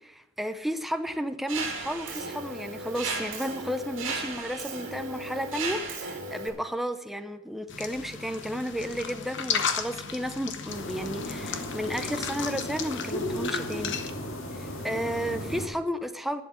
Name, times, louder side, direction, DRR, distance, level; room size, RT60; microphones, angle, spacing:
voice 1, 0.0-14.0 14.5-16.4, equal, ahead, 9 dB, 0.5 m, -33 dB
Mechanisms, 1.5-6.5, right 3 dB, 65° right, 2.4 m, -35 dB
sound 1, 7.7-14.1, left 6 dB, 60° left, 0.9 m, -34 dB
sound 2, 10.7-15.7, equal, 90° left, 1.9 m, -35 dB
11.5 x 7.3 x 7.3 m, 0.98 s
head